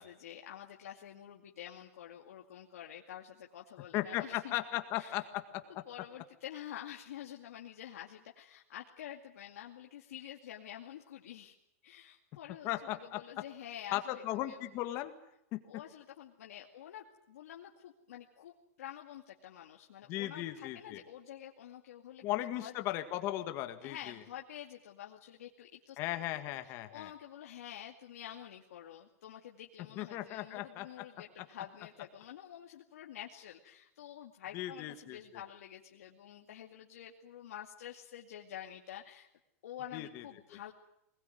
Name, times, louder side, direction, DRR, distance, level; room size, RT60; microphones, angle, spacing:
voice 1, 0.0-4.5 5.0-5.3 5.9-11.5 11.8-14.7 15.7-22.7 23.8-26.0 26.3-26.4 26.6-39.3 39.6-40.7, left 11 dB, 80° left, 0 dB, 2.4 m, -48 dB
voice 2, 3.9-5.6 12.6-13.2 13.9-15.1 15.5-15.6 20.1-21.0 22.2-24.2 26.0-27.1 30.0-30.9 34.5-35.2 39.9-40.2, left 15 dB, 30° left, 8 dB, 1.8 m, -37 dB
21.0 x 20.5 x 9.4 m, 0.79 s
supercardioid pair, 165°, 8 cm